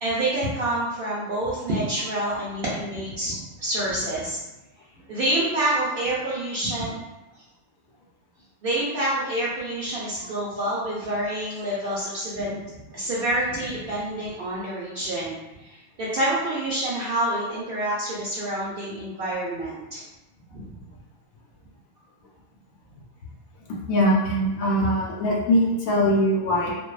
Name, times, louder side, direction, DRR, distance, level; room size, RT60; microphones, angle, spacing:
voice 1, 0.0-4.4 5.1-6.9 8.6-12.6 12.9-20.0 20.5-20.6, right 1 dB, 65° right, -6 dB, 0.6 m, -27 dB
voice 2, 23.6-26.7, equal, 85° left, -3 dB, 1.1 m, -22 dB
2.6 x 2.2 x 2.3 m, 1.0 s
omnidirectional pair, 1.4 m